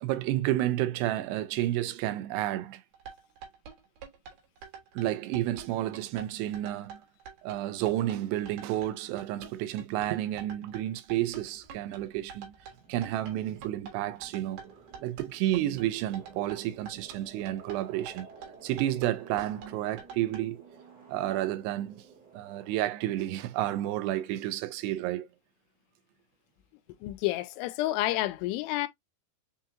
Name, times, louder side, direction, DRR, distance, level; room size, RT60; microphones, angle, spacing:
voice 1, 0.0-2.8 4.9-7.0 7.4-12.6 12.9-14.6 15.0-18.3 18.6-20.6 21.1-22.0 22.3-25.3, right 14 dB, 90° right, 2.7 m, -31 dB
sound 1, 2.9-20.4, right 6 dB, 75° right, 3.3 m, -46 dB
sound 2, 11.4-24.5, right 4 dB, 55° right, 1.1 m, -54 dB
voice 2, 27.0-28.9, left 16 dB, 90° left, 2.7 m, -29 dB
6.7 x 2.8 x 2.3 m
omnidirectional pair, 4.7 m